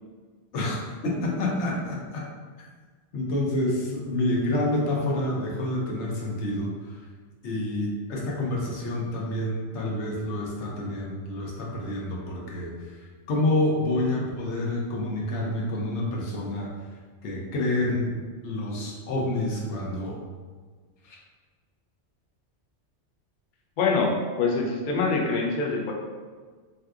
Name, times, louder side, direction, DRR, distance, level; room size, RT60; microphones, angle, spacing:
voice 1, 1.0-2.2 2.6-2.7 3.1-6.7 7.4-12.9 13.3-16.7 17.2-18.1 18.4-20.2 21.0-21.2, left 1 dB, 75° left, -2 dB, 1.0 m, -28 dB
voice 2, 23.8-25.9, left 4 dB, 60° left, -1 dB, 0.5 m, -25 dB
3.5 x 2.7 x 2.3 m, 1.5 s
omnidirectional pair, 1.2 m